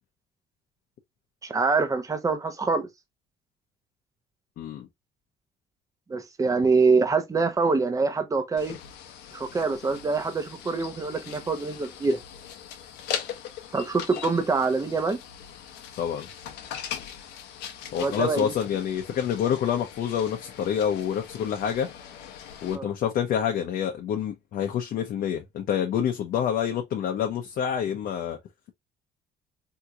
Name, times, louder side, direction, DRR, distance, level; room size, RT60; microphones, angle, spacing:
voice 1, 1.4-2.9 6.1-8.8 9.3-12.2 13.7-15.2 18.0-18.5 22.7-22.9, right 4 dB, 20° right, 0.8 m, -25 dB
voice 2, 4.6-4.9 16.0-16.3 17.9-21.9 22.6-28.4, left 9 dB, 60° left, 0.7 m, -27 dB
sound 1, 8.6-22.8, left 9 dB, 90° left, 0.8 m, -40 dB
3.6 x 2.9 x 2.3 m
cardioid pair, 110°, 17 cm